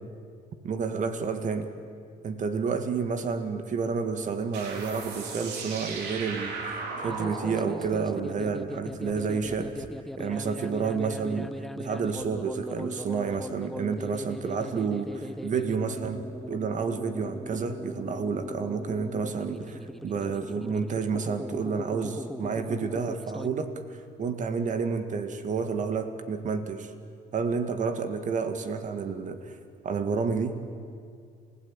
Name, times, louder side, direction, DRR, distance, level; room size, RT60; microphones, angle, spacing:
voice 1, 0.6-1.7 2.2-6.5 7.0-9.9 10.2-16.2 16.5-26.9 27.3-29.6 29.8-30.6, right 5 dB, 50° right, 9 dB, 1.9 m, -30 dB
sound 1, 4.5-9.8, right 4 dB, 90° right, 3.5 m, -37 dB
sound 2, 6.9-23.5, equal, ahead, 0.6 m, -39 dB
29.0 x 16.0 x 9.1 m, 2.3 s
cardioid pair, 110°, 17 cm